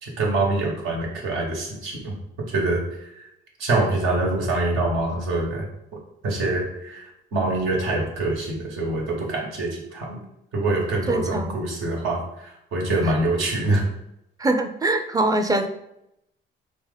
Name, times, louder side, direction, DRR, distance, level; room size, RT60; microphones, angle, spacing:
voice 1, 0.0-2.2 2.5-3.1 3.6-5.6 6.2-10.2 10.5-13.8, right 2 dB, 85° right, -1 dB, 1.3 m, -25 dB
voice 2, 11.1-11.6 13.0-13.1 14.4-15.7, right 2 dB, 20° right, 7 dB, 0.5 m, -23 dB
3.9 x 2.8 x 4.0 m, 0.82 s
cardioid pair, 90°, 20 cm